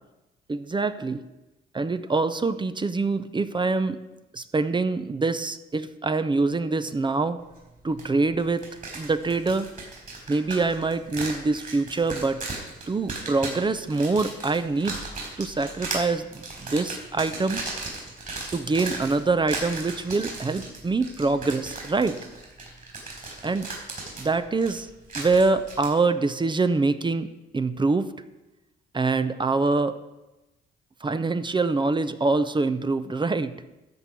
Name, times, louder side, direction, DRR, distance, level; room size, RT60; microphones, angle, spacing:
voice 1, 0.5-1.2 1.7-4.0 4.3-7.4 7.8-8.7 8.9-9.7 10.3-12.4 12.9-15.0 15.4-17.6 18.5-22.2 23.4-23.7 24.2-24.9 25.1-27.3 27.5-28.1 28.9-30.0 31.0-33.5, right 3 dB, 25° right, 12 dB, 0.7 m, -25 dB
sound 1, 8.0-8.1 8.4-25.9, right 3 dB, 40° right, 4.3 m, -36 dB
13.5 x 4.5 x 8.3 m, 1.0 s
cardioid pair, 90°, 20 cm